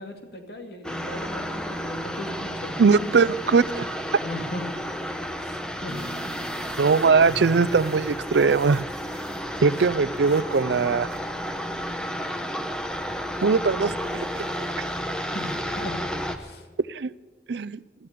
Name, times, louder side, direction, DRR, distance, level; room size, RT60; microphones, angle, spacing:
voice 1, 0.0-2.8 4.2-4.7 5.4-6.0 6.7-6.8 15.3-16.7, left 1 dB, 65° left, 4 dB, 2.4 m, -37 dB
sound 1, 0.8-16.4, equal, 5° left, 0.9 m, -32 dB
voice 2, 2.8-4.0 6.8-8.8 9.6-11.1 13.4-14.4 16.9-17.1 17.5-17.8, right 5 dB, 75° right, 18 dB, 0.5 m, -21 dB
sound 2, 5.9-12.3 12.8-13.4 13.8-15.9, right 2 dB, 60° right, 1.2 m, -43 dB
14.5 x 13.5 x 6.8 m, 1.4 s
head